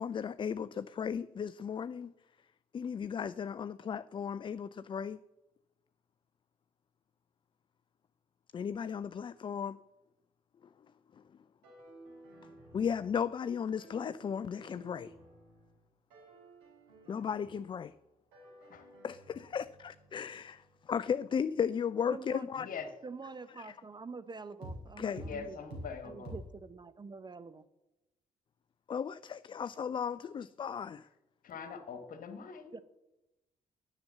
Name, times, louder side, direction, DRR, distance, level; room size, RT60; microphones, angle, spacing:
voice 1, 0.0-2.1 2.7-5.2 8.5-9.8 12.7-15.1 17.1-17.9 19.0-22.7 23.6-23.8 25.0-25.2 28.9-31.1, left 7 dB, 25° left, 0.4 m, -35 dB
sound 1, 11.6-13.4 13.8-15.8 16.1-18.1 18.3-22.0 24.6-24.8 25.2-25.4 25.7-25.9 26.2-26.4, right 1 dB, 65° right, 4.0 m, -51 dB
voice 2, 18.6-18.9 22.5-23.0 25.2-26.3 31.4-32.7, left 6 dB, 50° left, 1.5 m, -43 dB
voice 3, 22.1-22.5 23.0-25.7 26.0-27.7 32.7-32.8, right 4 dB, 25° right, 0.7 m, -46 dB
10.5 x 6.8 x 7.3 m
figure-of-eight pair, 40°, 18 cm